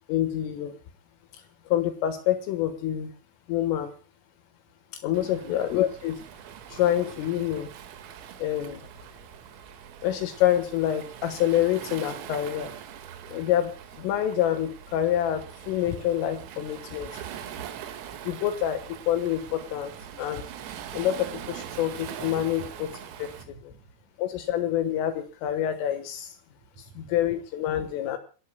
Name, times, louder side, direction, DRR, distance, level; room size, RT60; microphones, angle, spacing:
voice 1, 0.1-0.8 1.7-3.1 3.5-3.9 5.0-6.2 6.7-7.7 8.4-8.8 10.0-12.7 13.3-17.3 18.3-19.9 20.2-20.4 20.9-22.9 23.2-23.3 23.6-23.7 24.2-26.4 27.0-28.2, left 11 dB, 75° left, 8 dB, 3.7 m, -27 dB
Waves surf, 5.1-23.5, right 9 dB, 85° right, 4.5 m, -42 dB
voice 2, 5.2-5.5 17.2-18.0 22.6-22.7 23.3-23.9 26.8-27.1, right 7 dB, 60° right, 4 dB, 2.1 m, -48 dB
28.5 x 14.0 x 2.2 m, 0.36 s
omnidirectional pair, 6.0 m